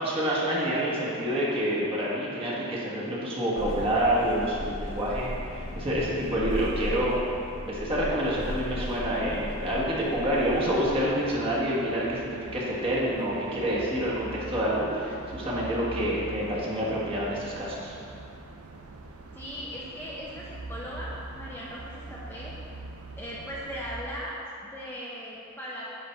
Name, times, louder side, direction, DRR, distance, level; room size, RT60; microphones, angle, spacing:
voice 1, 0.0-7.2 7.7-17.9, equal, 25° right, -6 dB, 1.5 m, -28 dB
sound 1, 3.6-11.0, left 1 dB, 70° left, 0.9 m, -36 dB
sound 2, 10.3-24.0, right 2 dB, 75° right, 0.7 m, -43 dB
voice 2, 19.3-22.5 23.2-25.9, equal, 10° left, -6 dB, 0.7 m, -38 dB
10.0 x 4.2 x 4.6 m, 2.7 s
head